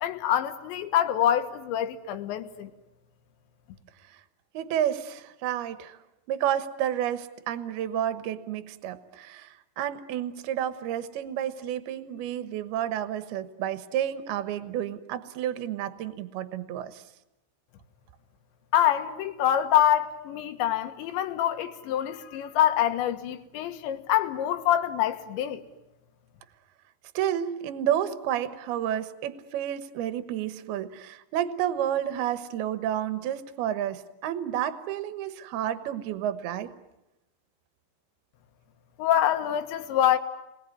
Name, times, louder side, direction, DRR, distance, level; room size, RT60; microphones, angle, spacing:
voice 1, 0.0-2.7 18.7-25.6 39.0-40.2, left 11 dB, 80° left, 3.6 m, -25 dB
voice 2, 4.5-6.0 6.3-17.0 27.1-36.7, right 10 dB, 70° right, 2.9 m, -30 dB
28.5 x 21.5 x 9.6 m
omnidirectional pair, 5.2 m